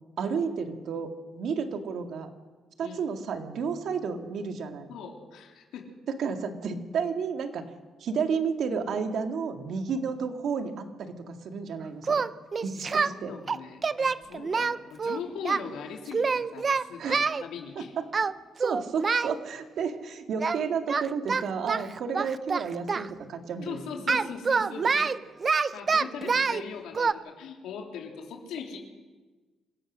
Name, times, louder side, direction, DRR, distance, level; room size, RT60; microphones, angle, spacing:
voice 1, 0.2-2.3 2.8-4.9 6.1-7.6 8.0-12.3 12.6-13.3 17.0-17.2 17.8-18.1 18.6-23.8 24.8-24.9, right 6 dB, 70° right, 5 dB, 2.2 m, -32 dB
voice 2, 4.9-5.9 12.6-16.3 16.5-17.9 23.6-25.1 25.5-28.8, left 6 dB, 85° left, 1 dB, 3.4 m, -40 dB
Singing, 12.0-13.1 13.5-15.6 16.1-17.4 18.1-18.3 18.6-19.3 20.4-20.6 20.9-23.1 24.1-26.6 26.9-27.1, right 5 dB, 40° right, 0.6 m, -26 dB
26.5 x 16.0 x 6.4 m, 1.3 s
cardioid pair, 90°, 0 cm